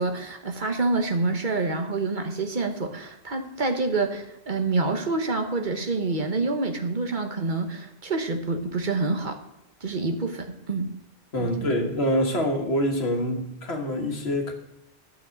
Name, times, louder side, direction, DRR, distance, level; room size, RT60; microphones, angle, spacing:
voice 1, 0.0-9.4 9.8-10.9 11.4-11.7 13.3-13.4, right 3 dB, 50° right, 6 dB, 1.3 m, -27 dB
voice 2, 11.3-14.5, equal, 85° left, 3 dB, 1.8 m, -25 dB
12.0 x 6.5 x 6.4 m, 0.82 s
omnidirectional pair, 1.0 m